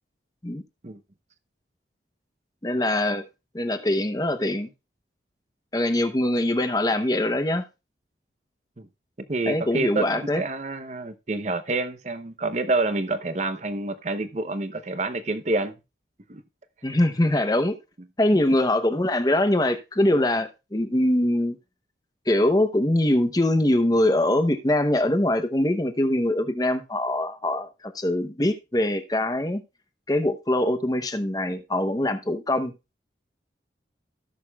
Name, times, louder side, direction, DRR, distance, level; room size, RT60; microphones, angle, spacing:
voice 1, 2.6-3.2 3.5-4.7 5.7-7.6 9.5-10.4 16.8-17.8 18.2-21.6 22.3-29.6 30.1-32.7, left 1 dB, 20° left, 0.8 m, -23 dB
voice 2, 9.3-15.7 16.3-16.4 16.8-17.0, right 2 dB, 40° right, 0.7 m, -28 dB
17.0 x 6.5 x 2.3 m
head